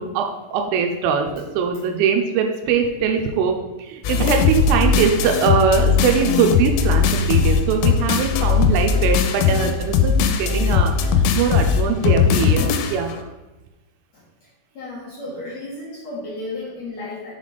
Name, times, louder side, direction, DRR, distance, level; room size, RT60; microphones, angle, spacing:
voice 1, 0.0-13.1, right 6 dB, 85° right, 3 dB, 3.0 m, -22 dB
sound 1, 4.0-13.2, left 6 dB, 90° left, 3.4 m, -19 dB
voice 2, 14.7-17.3, left 2 dB, 60° left, -9 dB, 1.8 m, -33 dB
7.3 x 4.0 x 4.9 m, 1.1 s
omnidirectional pair, 5.9 m